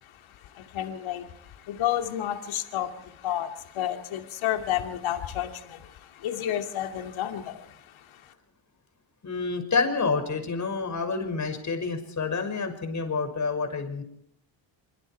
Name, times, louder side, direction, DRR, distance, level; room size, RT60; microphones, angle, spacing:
voice 1, 0.0-8.3, left 11 dB, 70° left, 4 dB, 2.8 m, -31 dB
voice 2, 9.2-14.0, left 4 dB, 35° left, 6 dB, 6.0 m, -28 dB
24.5 x 24.5 x 4.7 m, 0.72 s
cardioid pair, 105°, 50 cm